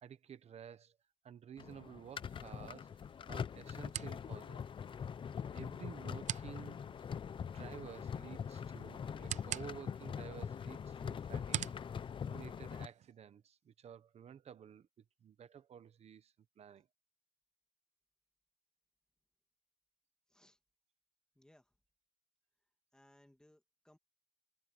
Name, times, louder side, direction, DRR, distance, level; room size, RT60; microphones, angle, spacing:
voice 1, 0.0-1.0 1.2-2.9 3.3-4.6 5.5-6.8 7.4-11.6 12.3-14.9 15.2-16.9, right 8 dB, 55° right, 1.0 m, -52 dB
sound 1, 1.6-12.9, left 7 dB, 40° left, 0.5 m, -43 dB
sound 2, 2.2-13.1, right 10 dB, 75° right, 0.6 m, -48 dB
voice 2, 21.3-21.7 22.9-24.0, left 1 dB, 5° left, 2.3 m, -66 dB
wide cardioid pair, 160°, 13 cm